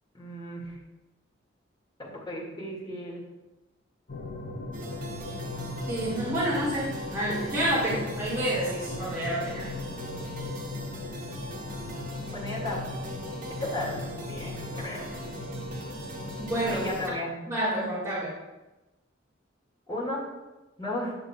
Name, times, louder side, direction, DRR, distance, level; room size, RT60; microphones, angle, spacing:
voice 1, 0.1-0.8 2.0-3.2 12.3-12.8 13.6-15.2 16.7-17.3 19.9-20.2 20.8-21.1, left 1 dB, 25° left, -5 dB, 2.1 m, -34 dB
sound 1, 4.1-17.1, left 2 dB, 50° left, 0.8 m, -37 dB
sound 2, 4.7-17.1, right 2 dB, 45° right, 1.1 m, -42 dB
voice 2, 5.9-9.6 16.4-16.9 17.5-18.3, right 1 dB, 15° right, -10 dB, 1.8 m, -29 dB
8.8 x 6.6 x 2.4 m, 1.1 s
head